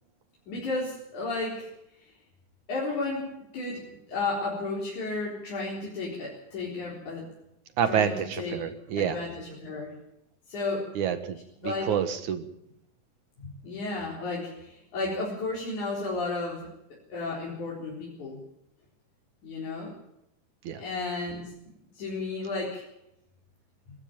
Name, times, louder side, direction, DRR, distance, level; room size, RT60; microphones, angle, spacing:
voice 1, 0.5-1.7 2.7-3.3 3.5-3.8 4.1-7.3 7.9-8.6 9.0-10.0 10.5-10.9 11.6-11.9 13.4-16.7 17.1-18.4 19.4-19.9 20.8-21.5 22.0-22.8, left 3 dB, 75° left, -5 dB, 5.7 m, -33 dB
voice 2, 7.8-9.2 11.0-12.5 20.6-20.8, right 8 dB, 75° right, 11 dB, 3.0 m, -28 dB
22.5 x 13.5 x 8.9 m, 0.82 s
omnidirectional pair, 3.5 m